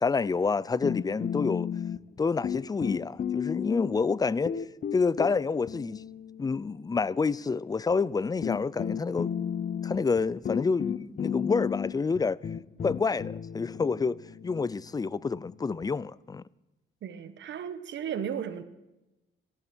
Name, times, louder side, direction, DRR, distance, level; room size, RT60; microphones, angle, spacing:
voice 1, 0.0-1.7 2.2-4.5 4.9-6.0 6.4-9.3 9.8-12.4 12.8-14.2 14.4-16.4, left 4 dB, 20° left, 0.4 m, -28 dB
sound 1, 0.8-2.2 2.4-4.1 4.5-6.9 7.9-8.0 8.4-15.9, left 8 dB, 40° left, 0.8 m, -34 dB
voice 2, 17.0-18.6, right 8 dB, 70° right, 1.2 m, -35 dB
15.5 x 13.0 x 6.2 m
cardioid pair, 90°, 20 cm